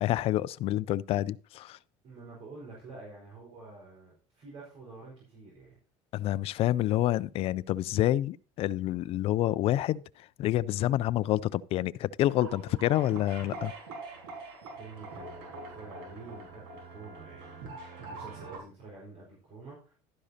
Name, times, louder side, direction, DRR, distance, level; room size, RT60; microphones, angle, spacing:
voice 1, 0.0-1.8 6.1-10.0 10.4-13.7, left 14 dB, 50° left, 0.4 m, -28 dB
voice 2, 2.0-5.8 14.8-19.9, right 3 dB, 55° right, 4.5 m, -48 dB
sound 1, 12.2-18.6, right 3 dB, 85° right, 4.5 m, -44 dB
12.0 x 10.0 x 2.8 m
supercardioid pair, 120°, 13 cm